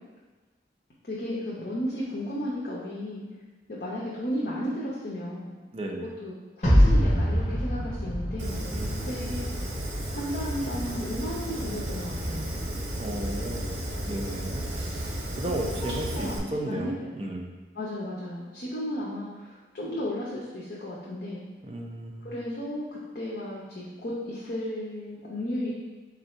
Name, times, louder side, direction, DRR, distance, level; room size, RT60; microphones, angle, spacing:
voice 1, 1.1-3.2 3.7-5.5 6.2-8.7 9.0-9.5 10.1-12.6 15.7-16.9 17.8-21.4 22.2-25.7, equal, 60° left, -6 dB, 0.7 m, -34 dB
voice 2, 5.7-6.1 8.7-9.5 13.0-14.7 15.0-17.6 21.6-22.3, right 1 dB, 30° right, 1 dB, 0.4 m, -35 dB
sound 1, 6.6-9.9, equal, 40° left, 1.1 m, -24 dB
Fire, 8.4-16.4, right 1 dB, 85° right, 0.7 m, -33 dB
3.9 x 2.6 x 4.3 m, 1.3 s
head